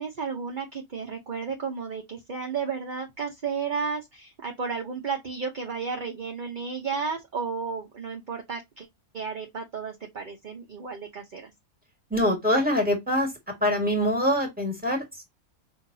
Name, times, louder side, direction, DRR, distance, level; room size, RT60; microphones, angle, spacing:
voice 1, 0.0-8.9 9.1-11.5, right 5 dB, 40° right, 0.9 m, -33 dB
voice 2, 12.1-13.3 13.6-15.2, equal, 5° right, 1.7 m, -24 dB
5.7 x 2.7 x 2.7 m
omnidirectional pair, 1.5 m